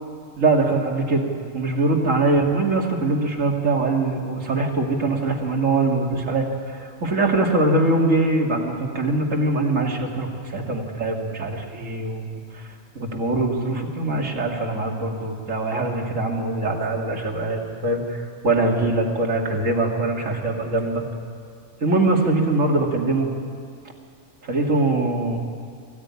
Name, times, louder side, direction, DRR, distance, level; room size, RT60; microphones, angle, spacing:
voice 1, 0.4-1.3 1.5-12.7 12.9-21.0 21.8-23.3 24.4-25.4, right 2 dB, 85° right, 1 dB, 2.8 m, -22 dB
22.5 x 16.0 x 9.8 m, 2.2 s
omnidirectional pair, 1.3 m